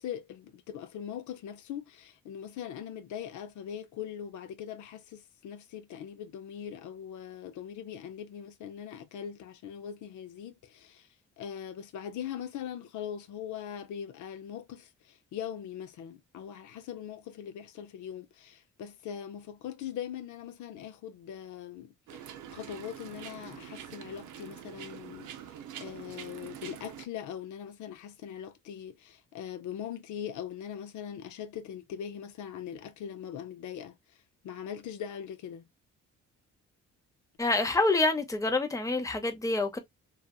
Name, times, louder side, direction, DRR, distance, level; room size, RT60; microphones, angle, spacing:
voice 1, 0.0-11.1 11.4-34.2 34.4-35.7, left 9 dB, 75° left, 0.6 m, -41 dB
sound 1, 22.1-27.0, right 10 dB, 80° right, 0.6 m, -45 dB
voice 2, 37.4-39.8, left 2 dB, 10° left, 0.7 m, -27 dB
2.6 x 2.4 x 2.3 m
cardioid pair, 90°, 30 cm